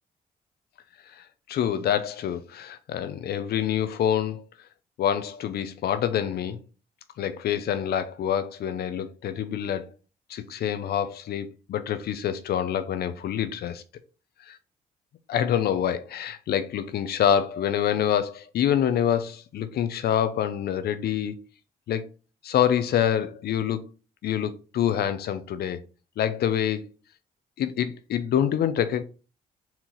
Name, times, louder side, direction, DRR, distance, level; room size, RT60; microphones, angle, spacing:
voice 1, 1.1-4.4 5.0-6.6 7.2-9.9 10.3-13.8 15.3-21.4 21.9-22.1 22.4-23.8 24.2-25.8 26.2-26.8 27.6-29.0, left 9 dB, 70° left, 0.6 m, -26 dB
4.3 x 2.9 x 3.8 m
supercardioid pair, 60°, 17 cm